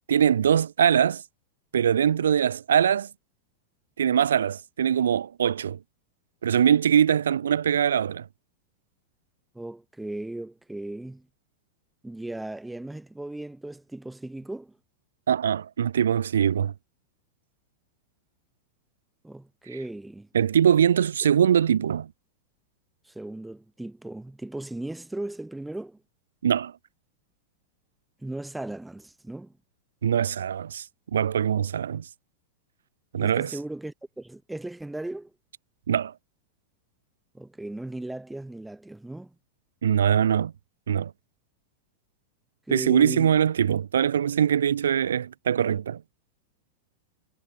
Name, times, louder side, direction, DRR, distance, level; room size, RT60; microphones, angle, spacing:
voice 1, 0.1-1.2 1.7-3.1 4.0-5.8 6.4-8.3 15.3-16.7 20.3-22.1 26.4-26.7 30.0-30.8 31.1-32.0 33.1-33.5 35.9-36.1 39.8-40.5 40.9-41.1 42.7-46.0, right 8 dB, 65° right, 0.7 m, -22 dB
voice 2, 9.5-11.3 12.0-14.8 19.2-20.3 23.1-26.0 28.2-29.5 33.2-35.3 37.3-39.3 42.7-43.3, right 2 dB, 5° right, 3.6 m, -37 dB
figure-of-eight pair, 90°, 0 cm